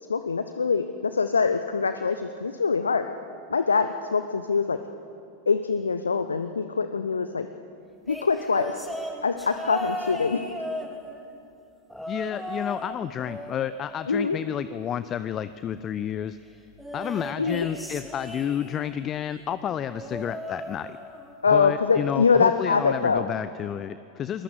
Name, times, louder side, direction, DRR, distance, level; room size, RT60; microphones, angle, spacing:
voice 1, 0.1-3.0 3.5-4.8 5.5-7.5 8.1-8.8 9.2-10.4 14.1-14.4 17.4-17.7 21.4-23.2, left 5 dB, 75° left, 9 dB, 1.0 m, -24 dB
sound 1, 8.1-11.4 11.9-12.9 13.2-14.7 16.8-19.0 19.9-21.3 21.7-22.0 23.2-23.3, equal, ahead, 3.4 m, -37 dB
voice 2, 12.1-16.4 16.9-21.0 21.5-24.4, left 9 dB, 30° left, 14 dB, 0.7 m, -30 dB
29.5 x 21.0 x 8.0 m, 2.5 s
figure-of-eight pair, 90°, 0 cm